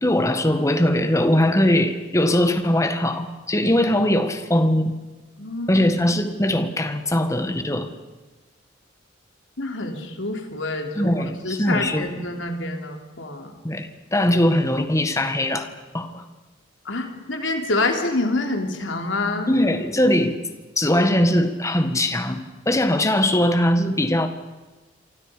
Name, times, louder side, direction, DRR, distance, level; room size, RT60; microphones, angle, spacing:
voice 1, 0.0-4.9 5.7-7.9 11.0-12.3 13.6-15.7 15.9-16.2 19.5-20.3 20.8-24.3, left 1 dB, 15° left, 7 dB, 1.8 m, -21 dB
voice 2, 5.4-5.8 9.6-11.1 11.4-13.5 16.9-19.6, left 2 dB, 80° left, 4 dB, 3.5 m, -27 dB
28.0 x 25.0 x 5.3 m, 1.2 s
head